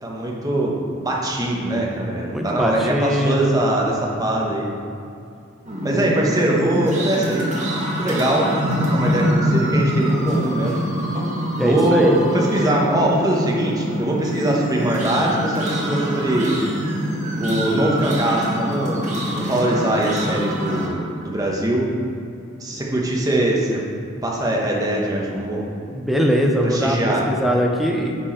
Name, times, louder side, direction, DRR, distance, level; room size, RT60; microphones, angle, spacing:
voice 1, 0.0-4.7 5.8-7.5 8.0-8.5 8.9-10.8 11.5-16.6 17.4-19.1 19.3-21.9 22.6-23.8 24.2-25.7 26.6-27.3, right 1 dB, 15° right, -3 dB, 1.1 m, -22 dB
voice 2, 2.3-3.6 5.9-6.1 11.5-12.2 25.9-28.2, equal, ahead, 0 dB, 0.6 m, -21 dB
sound 1, 5.6-20.9, equal, 35° right, 1.3 m, -24 dB
9.0 x 4.6 x 4.5 m, 2.5 s
head